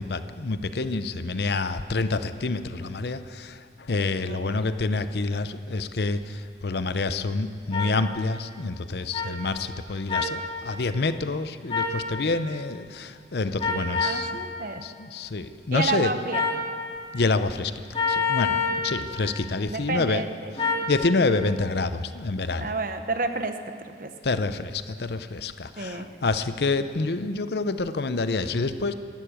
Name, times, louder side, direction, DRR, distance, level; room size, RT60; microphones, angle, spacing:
voice 1, 0.0-3.5 3.9-6.2 6.6-14.3 14.8-16.1 17.1-17.7 18.1-20.2 20.9-22.7 24.2-24.7 25.0-28.9, left 3 dB, 70° left, 12 dB, 0.6 m, -27 dB
voice 2, 4.3-4.6 13.9-14.8 15.7-16.5 18.7-18.9 19.7-20.9 22.6-24.1 25.8-26.1, right 3 dB, 50° right, 7 dB, 1.0 m, -31 dB
sound 1, 7.7-7.9 9.1-9.3 10.1-10.3 11.7-12.0 13.6-14.2 16.3-16.6 17.9-18.8 20.6-20.9, left 4 dB, 30° left, 2.5 m, -25 dB
12.5 x 12.0 x 8.9 m, 2.2 s
head